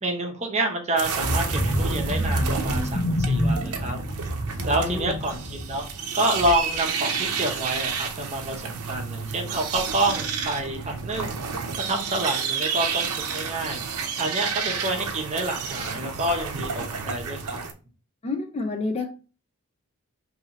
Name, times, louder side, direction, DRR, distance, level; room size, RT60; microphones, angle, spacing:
voice 1, 0.0-4.0 4.6-5.8 6.1-11.4 11.8-13.8 14.2-17.6, right 1 dB, 30° right, 2 dB, 0.7 m, -28 dB
sound 1, 1.0-17.7, right 6 dB, 85° right, 0.6 m, -31 dB
sound 2, 1.1-6.9 7.2-7.5 7.8-7.9, equal, 45° left, 1.0 m, -27 dB
voice 2, 4.8-5.2 18.2-19.1, left 3 dB, 30° left, 5 dB, 0.4 m, -29 dB
2.7 x 2.7 x 3.9 m, 0.35 s
head